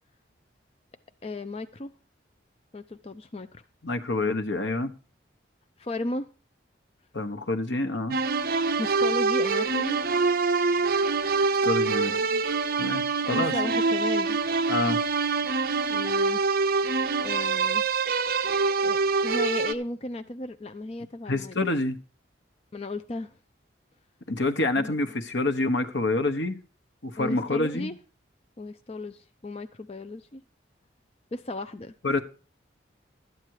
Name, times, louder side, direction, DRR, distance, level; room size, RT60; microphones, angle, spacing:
voice 1, 1.2-1.9 2.7-3.6 5.8-6.3 8.8-10.0 12.0-12.4 13.3-14.4 15.9-16.4 17.2-17.9 18.8-21.6 22.7-23.4 24.8-24.9 27.2-28.0 28.6-30.4 31.3-31.9, left 2 dB, 30° left, 0.5 m, -35 dB
voice 2, 3.8-4.9 7.1-8.2 11.5-12.2 12.8-13.5 14.7-15.0 21.3-22.0 24.3-26.6 27.0-27.9 32.0-32.2, left 2 dB, 70° left, 1.2 m, -27 dB
sound 1, 8.1-19.7, right 4 dB, 50° right, 0.6 m, -25 dB
12.5 x 9.1 x 4.8 m
head